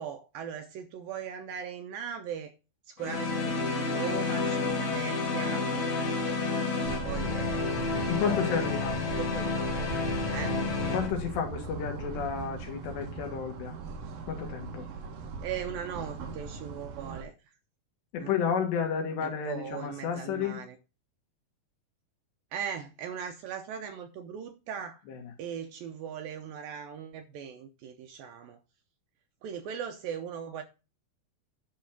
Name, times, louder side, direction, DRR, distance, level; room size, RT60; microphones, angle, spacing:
voice 1, 0.0-2.5 2.9-6.1 7.0-8.7 9.1-9.5 10.3-10.6 15.4-17.5 18.2-18.4 19.2-20.8 22.5-25.0 25.4-28.6 29.4-30.6, right 8 dB, 80° right, 2.1 m, -39 dB
sound 1, 3.0-11.1, left 3 dB, 50° left, 2.6 m, -30 dB
sound 2, 6.9-17.2, right 4 dB, 65° right, 2.9 m, -39 dB
voice 2, 8.1-9.0 10.9-13.8 14.3-14.9 18.1-20.6 25.1-25.2, left 7 dB, 80° left, 4.1 m, -31 dB
10.5 x 4.2 x 6.0 m
omnidirectional pair, 4.9 m